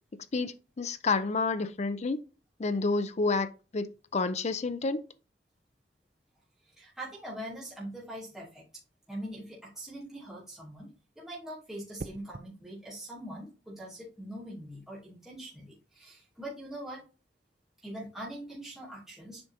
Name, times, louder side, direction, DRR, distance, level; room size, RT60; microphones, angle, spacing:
voice 1, 0.3-2.2 2.6-5.0, left 3 dB, 40° left, 0.5 m, -29 dB
voice 2, 6.7-8.6 9.1-10.9 11.2-17.0 17.8-19.4, right 1 dB, 5° right, 2.9 m, -42 dB
sound 1, 12.0-12.5 14.5-14.8, right 3 dB, 45° right, 0.5 m, -44 dB
7.9 x 5.0 x 2.9 m
head